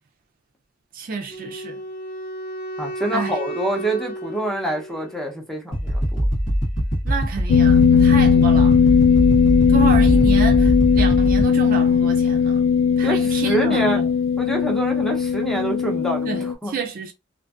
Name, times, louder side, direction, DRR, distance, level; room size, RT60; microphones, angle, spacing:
voice 1, 0.9-1.8 3.1-3.4 7.0-8.8 9.7-12.6 13.0-14.1 16.2-17.1, right 5 dB, 45° right, 0.4 m, -29 dB
Wind instrument woodwind instrument, 1.3-5.4, right 1 dB, 50° left, 1.1 m, -33 dB
voice 2, 2.8-6.2 13.0-14.0 14.4-16.7, right 1 dB, ahead, 0.6 m, -26 dB
sound 1, 5.7-11.4, equal, 90° left, 1.1 m, -22 dB
sound 2, 7.5-16.5, left 6 dB, 75° left, 0.3 m, -17 dB
2.5 x 2.5 x 2.3 m
head